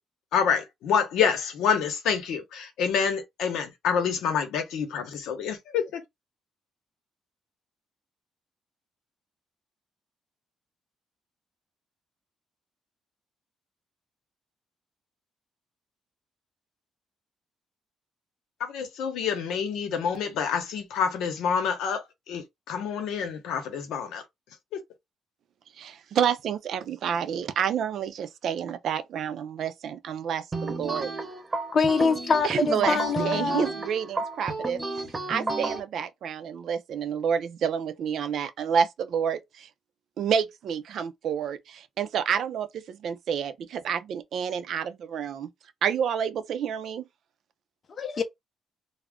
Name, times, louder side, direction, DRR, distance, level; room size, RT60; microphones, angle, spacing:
voice 1, 0.3-6.0 18.6-24.2, left 7 dB, 85° left, 0.8 m, -27 dB
voice 2, 25.8-31.1 32.4-34.8 35.3-39.7 40.2-45.5 45.8-47.0, right 8 dB, 70° right, 0.4 m, -29 dB
sound 1, 30.5-35.8, right 3 dB, 25° right, 0.8 m, -32 dB
voice 3, 31.7-33.7 48.0-48.2, left 4 dB, 45° left, 0.6 m, -24 dB
2.4 x 2.0 x 3.4 m
cardioid pair, 90°, 0 cm